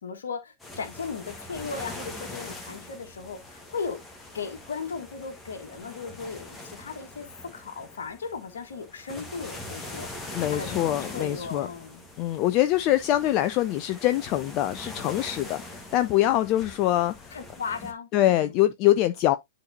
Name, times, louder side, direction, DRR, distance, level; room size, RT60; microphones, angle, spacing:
voice 1, 0.0-4.0 4.3-7.3 7.5-12.0 17.3-18.6, left 5 dB, 65° left, 1.6 m, -37 dB
sound 1, 0.6-17.9, left 1 dB, 10° left, 1.7 m, -42 dB
voice 2, 10.3-11.7 12.2-17.4 18.1-19.4, left 14 dB, 35° left, 0.4 m, -24 dB
10.5 x 4.0 x 2.7 m
figure-of-eight pair, 100°, 0 cm